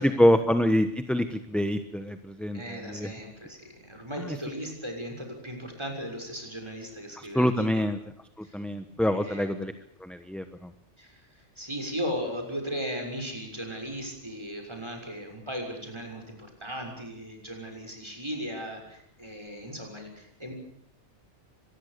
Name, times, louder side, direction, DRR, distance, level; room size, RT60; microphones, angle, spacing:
voice 1, 0.0-3.1 7.2-8.0 8.4-9.7 10.0-10.7, equal, ahead, 8 dB, 1.0 m, -26 dB
voice 2, 2.5-7.9 8.4-8.6 9.1-9.6 11.0-20.5, equal, 25° right, 3 dB, 6.4 m, -37 dB
25.0 x 20.5 x 6.8 m, 0.72 s
omnidirectional pair, 1.2 m